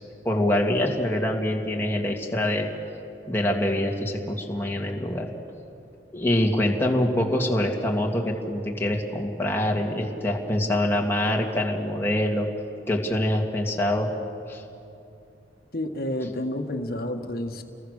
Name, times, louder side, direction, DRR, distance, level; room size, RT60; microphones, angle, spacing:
voice 1, 0.2-2.7 3.3-5.3 6.1-12.5 12.9-14.1 14.5-14.6, left 1 dB, 10° left, 0 dB, 2.1 m, -25 dB
voice 2, 15.7-17.6, left 1 dB, 50° left, 5 dB, 1.7 m, -30 dB
30.0 x 22.0 x 6.6 m, 2.7 s
head